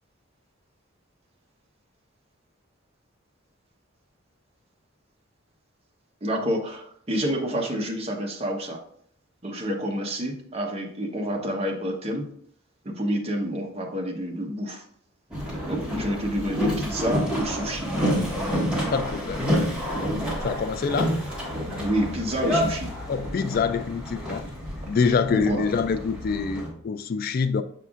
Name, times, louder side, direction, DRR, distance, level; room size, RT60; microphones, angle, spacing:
voice 1, 6.2-8.8 9.4-12.3 12.8-14.8 15.7-17.9 21.8-22.9 25.3-25.7, equal, 30° right, 1 dB, 0.9 m, -28 dB
Boat Water vehicle, 15.3-26.7, equal, 5° right, 1.6 m, -29 dB
voice 2, 18.9-19.6 20.4-21.1 23.1-24.5 24.9-27.6, left 5 dB, 45° left, 11 dB, 0.3 m, -25 dB
7.1 x 5.6 x 2.4 m, 0.65 s
head